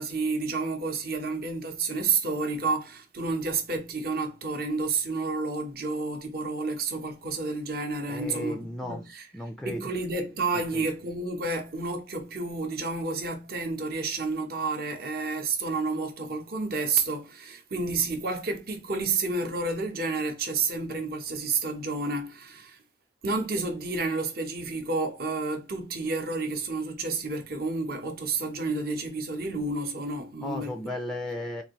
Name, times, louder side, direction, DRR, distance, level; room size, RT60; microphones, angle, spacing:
voice 1, 0.0-9.3 9.6-22.8 23.2-30.8, right 3 dB, 55° right, 0.9 m, -30 dB
voice 2, 8.1-9.0 9.3-9.9 10.5-10.8 30.4-31.6, left 1 dB, ahead, 0.4 m, -35 dB
4.0 x 2.5 x 2.9 m
head